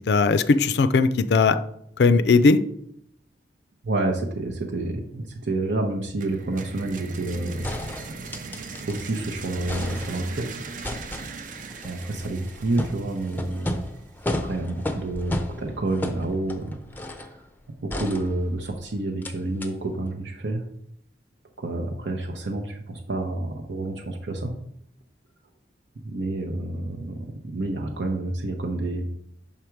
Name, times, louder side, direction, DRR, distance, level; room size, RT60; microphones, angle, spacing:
voice 1, 0.1-1.6 2.0-2.6, left 4 dB, 65° left, 12 dB, 0.4 m, -18 dB
voice 2, 3.8-7.7 8.9-10.5 11.8-13.8 14.4-16.8 17.1-17.5 17.8-20.6 21.6-24.5 26.0-29.1, right 2 dB, 80° right, 2 dB, 0.8 m, -29 dB
sound 1, 6.2-14.0, right 4 dB, 45° right, 0.5 m, -39 dB
sound 2, 7.2-7.3 7.6-9.2 9.5-10.4 10.8-17.4 17.9-18.8 19.2-19.3 19.6-19.7, left 1 dB, 10° left, 0.5 m, -34 dB
5.8 x 5.0 x 4.5 m, 0.73 s
head